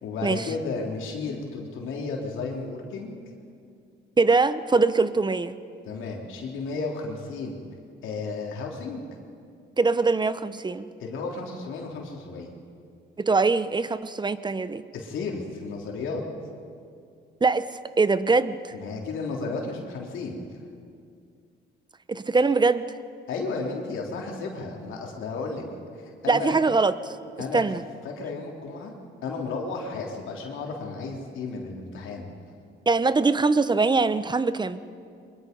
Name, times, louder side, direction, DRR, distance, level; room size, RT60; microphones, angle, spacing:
voice 1, 0.0-3.2 5.9-7.6 8.0-9.1 11.0-12.5 14.9-16.2 18.7-20.4 23.3-25.6 25.9-26.6 27.4-27.7 28.0-28.9 29.2-32.3, left 4 dB, 80° left, 0 dB, 3.6 m, -33 dB
voice 2, 4.2-5.5 9.8-10.9 13.2-14.8 17.4-17.7 18.0-18.8 22.1-22.9 26.3-27.2 27.5-27.8 32.9-34.8, right 3 dB, 20° right, 13 dB, 0.9 m, -22 dB
24.0 x 22.0 x 5.4 m, 2.3 s
cardioid pair, 90°, 20 cm